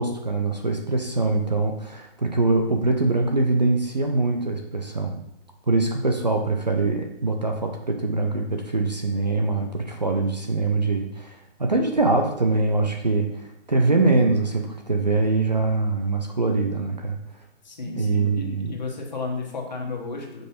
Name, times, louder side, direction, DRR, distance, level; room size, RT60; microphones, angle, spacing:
voice 1, 0.0-5.2 5.7-17.2 17.8-18.7, right 3 dB, 40° right, 3 dB, 0.5 m, -23 dB
voice 2, 17.6-20.4, left 3 dB, 40° left, 0 dB, 1.2 m, -33 dB
5.4 x 4.6 x 4.3 m, 0.81 s
hypercardioid pair, 175°, 34 cm